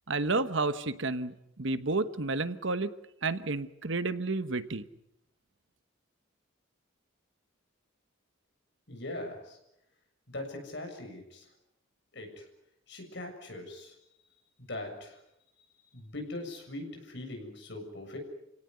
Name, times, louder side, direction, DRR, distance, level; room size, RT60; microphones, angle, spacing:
voice 1, 0.1-2.9 3.2-4.9, right 3 dB, 65° right, 12 dB, 1.2 m, -31 dB
voice 2, 8.9-9.6 10.3-11.5 12.1-12.5 12.9-14.0 14.6-15.2 15.9-18.2, left 1 dB, 55° left, 4 dB, 7.1 m, -41 dB
28.5 x 17.5 x 9.6 m, 0.82 s
head